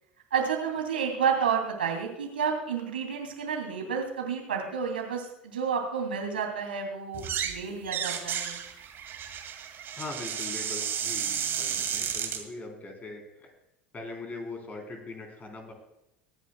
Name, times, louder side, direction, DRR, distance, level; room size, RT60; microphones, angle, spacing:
voice 1, 0.3-8.6, right 6 dB, 75° right, 2 dB, 2.9 m, -30 dB
sound 1, 7.1-7.6 7.8-12.4, right 8 dB, 45° right, 2.1 m, -32 dB
voice 2, 9.9-13.5 13.9-15.7, left 3 dB, 30° left, 3 dB, 3.8 m, -41 dB
23.0 x 10.0 x 2.3 m, 0.89 s
figure-of-eight pair, 65°, 5 cm